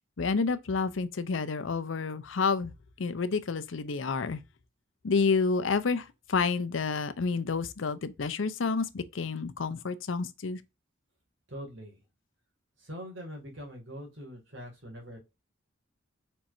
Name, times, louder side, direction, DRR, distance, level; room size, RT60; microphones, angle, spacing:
voice 1, 0.2-4.4 5.0-10.6, left 4 dB, 85° left, 0.6 m, -29 dB
voice 2, 11.5-12.0 12.8-15.2, equal, 75° right, 2.2 m, -43 dB
4.6 x 4.2 x 2.6 m
head